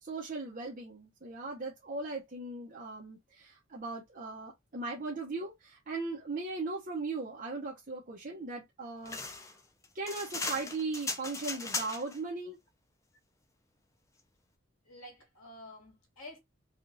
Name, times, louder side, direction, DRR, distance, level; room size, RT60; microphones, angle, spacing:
voice 1, 0.0-9.5 9.9-12.6, right 3 dB, 40° right, 0.8 m, -38 dB
sound 1, 9.1-12.2, left 3 dB, 15° left, 0.4 m, -37 dB
voice 2, 14.9-16.4, left 1 dB, 80° left, 1.5 m, -49 dB
3.6 x 2.4 x 2.6 m
head